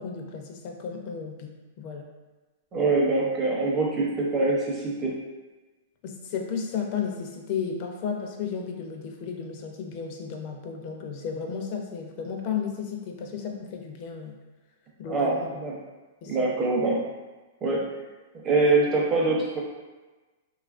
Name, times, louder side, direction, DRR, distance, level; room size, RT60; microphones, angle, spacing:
voice 1, 0.0-2.1 6.0-14.4 15.0-15.5 16.2-16.4, left 6 dB, 45° left, 2 dB, 0.4 m, -33 dB
voice 2, 2.7-5.1 15.1-15.8 16.3-17.0 17.6-17.8 18.4-19.6, right 3 dB, 25° right, -3 dB, 0.6 m, -24 dB
2.8 x 2.3 x 2.4 m, 1.2 s
hypercardioid pair, 135°, 0 cm